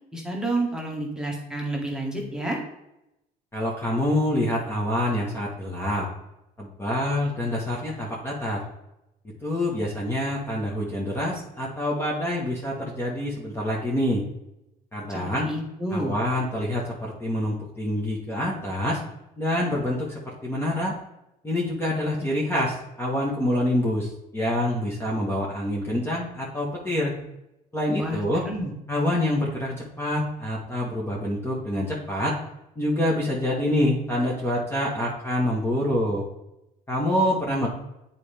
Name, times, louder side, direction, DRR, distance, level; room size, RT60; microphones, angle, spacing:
voice 1, 0.1-2.6 15.1-16.1 28.0-28.2 28.4-28.7, right 1 dB, 5° right, -2 dB, 1.5 m, -29 dB
voice 2, 3.5-6.1 6.6-8.6 9.4-14.2 14.9-15.5 15.9-19.0 19.4-20.9 21.4-27.1 27.7-28.4 28.9-32.4 32.8-36.2 36.9-37.7, left 1 dB, 15° left, -4 dB, 1.3 m, -26 dB
8.2 x 4.3 x 3.4 m, 0.88 s
cardioid pair, 110°, 17 cm